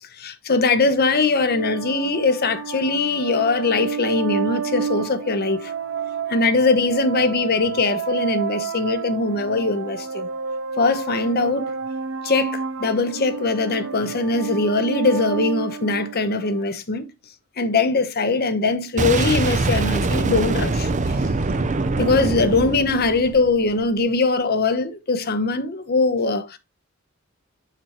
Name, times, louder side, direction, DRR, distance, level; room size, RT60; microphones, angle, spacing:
voice 1, 0.2-5.7 6.3-10.3 10.8-11.7 12.2-17.1 17.6-21.1 22.0-26.6, left 3 dB, 50° left, 0.9 m, -21 dB
sound 1, 1.2-16.6, right 6 dB, 70° right, 0.8 m, -30 dB
Boom, 19.0-23.8, right 3 dB, 35° right, 0.6 m, -23 dB
6.8 x 6.1 x 3.0 m
head